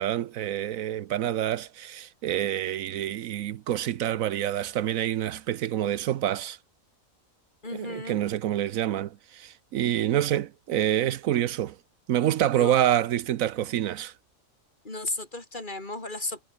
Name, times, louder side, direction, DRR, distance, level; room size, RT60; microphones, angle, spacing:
voice 1, 0.0-6.6 7.7-11.8 12.1-14.1, right 11 dB, 75° right, 1.1 m, -27 dB
voice 2, 7.6-8.2 12.5-12.8 14.8-16.4, left 2 dB, 35° left, 3.3 m, -34 dB
omnidirectional pair, 1.5 m